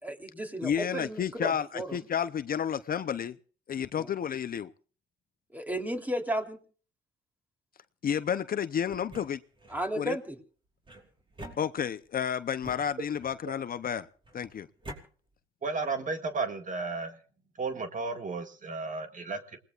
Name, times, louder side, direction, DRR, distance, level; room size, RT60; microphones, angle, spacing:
voice 1, 0.0-2.0 4.0-4.1 5.5-6.6 9.7-10.4, equal, 10° right, 4 dB, 3.3 m, -34 dB
voice 2, 0.6-3.4 3.7-4.7 8.0-9.4 10.0-10.2 11.6-14.1 14.3-14.7, left 8 dB, 45° left, 12 dB, 0.7 m, -31 dB
sound 1, 8.9-9.8 10.8-12.1 12.6-13.5 14.2-15.0, right 1 dB, 25° right, 5.1 m, -47 dB
voice 3, 15.6-17.2 17.6-19.6, right 4 dB, 40° right, 6 dB, 1.9 m, -33 dB
28.0 x 19.5 x 2.4 m, 0.42 s
cardioid pair, 90°, 20 cm